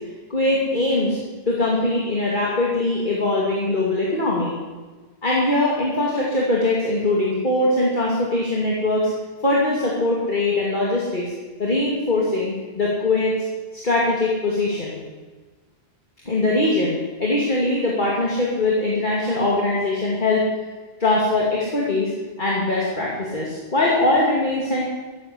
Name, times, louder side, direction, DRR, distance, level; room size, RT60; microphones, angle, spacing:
voice 1, 0.3-1.2 1.5-4.6 5.2-9.1 9.4-11.3 11.6-13.3 13.7-15.0 16.2-20.4 21.0-22.1 22.4-24.8, left 2 dB, 45° left, -4 dB, 2.7 m, -21 dB
13.5 x 12.0 x 8.4 m, 1.3 s
omnidirectional pair, 1.1 m